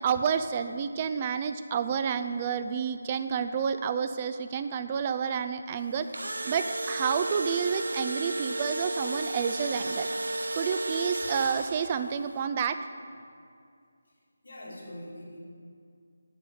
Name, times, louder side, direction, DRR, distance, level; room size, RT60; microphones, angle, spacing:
voice 1, 0.0-6.1 6.5-10.1 10.5-12.8, right 7 dB, 25° right, 10 dB, 0.3 m, -29 dB
Engine / Drill, 5.9-12.1, right 2 dB, 85° right, 0.7 m, -33 dB
voice 2, 14.4-15.4, left 1 dB, 80° left, -6 dB, 2.4 m, -43 dB
9.0 x 6.2 x 5.3 m, 2.3 s
figure-of-eight pair, 170°, 0 cm